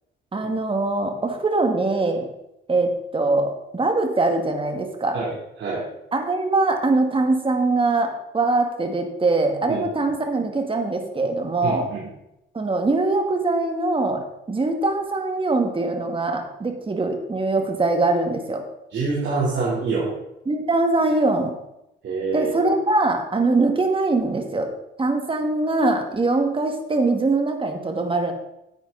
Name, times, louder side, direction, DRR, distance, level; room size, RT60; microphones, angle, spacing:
voice 1, 0.3-2.3 2.7-5.2 6.1-11.9 12.5-18.6 20.5-21.5 22.3-24.7 25.0-28.3, right 2 dB, 25° right, 4 dB, 2.0 m, -22 dB
voice 2, 11.6-12.0 18.9-20.1 22.0-22.5, right 4 dB, 65° right, -6 dB, 3.6 m, -25 dB
10.5 x 8.5 x 4.0 m, 0.87 s
cardioid pair, 90°, 20 cm